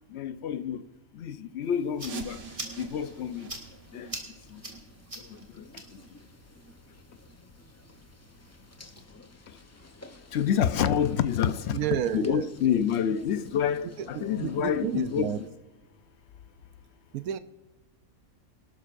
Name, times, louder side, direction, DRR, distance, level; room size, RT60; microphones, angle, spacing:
voice 1, 0.1-0.8 1.2-2.4 2.8-3.5 3.9-4.1 10.3-11.8 12.1-15.3, left 8 dB, 60° left, 0.8 m, -27 dB
sound 1, 1.6-9.0, right 1 dB, 25° right, 2.1 m, -46 dB
sound 2, 2.0-7.6 7.9-8.0 8.6-8.7 9.3-9.4 9.9-10.0, right 5 dB, 60° right, 1.3 m, -46 dB
sound 3, 2.3-15.5, left 2 dB, 20° left, 0.4 m, -52 dB
voice 2, 11.7-12.5 14.1-15.4 17.1-17.4, right 10 dB, 85° right, 1.1 m, -31 dB
24.5 x 12.0 x 2.5 m
omnidirectional pair, 1.5 m